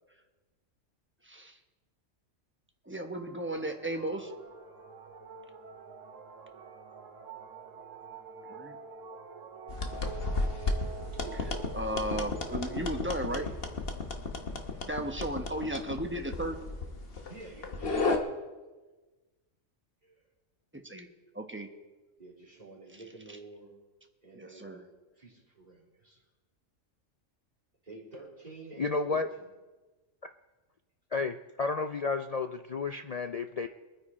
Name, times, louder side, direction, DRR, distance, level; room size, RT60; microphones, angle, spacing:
voice 1, 1.2-1.6 2.8-4.3 8.5-8.8 11.7-13.4 14.8-16.6 20.7-21.1 21.3-21.7 24.4-24.8, right 1 dB, 10° right, 4 dB, 1.0 m, -35 dB
sound 1, 3.1-14.9, right 5 dB, 75° right, 1.3 m, -48 dB
sound 2, 9.7-18.2, left 3 dB, 50° left, 1.4 m, -34 dB
voice 2, 11.1-12.9 13.3-13.5 17.1-18.3 20.0-20.2 22.2-23.7 24.2-24.9 25.2-26.2 27.8-29.5, right 3 dB, 30° right, -4 dB, 3.6 m, -49 dB
voice 3, 28.8-29.3 31.1-33.7, left 4 dB, 75° left, 7 dB, 0.3 m, -31 dB
23.0 x 9.7 x 4.3 m, 1.2 s
omnidirectional pair, 1.3 m